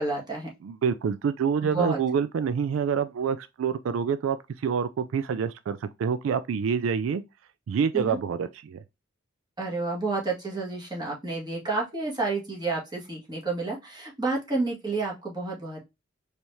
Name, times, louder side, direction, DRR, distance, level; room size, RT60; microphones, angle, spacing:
voice 1, 0.0-0.5 1.6-2.0 7.9-8.2 9.6-15.8, right 3 dB, 20° right, 1.7 m, -30 dB
voice 2, 0.6-7.2 7.7-8.8, right 6 dB, 80° right, 0.3 m, -27 dB
4.6 x 3.3 x 2.7 m
head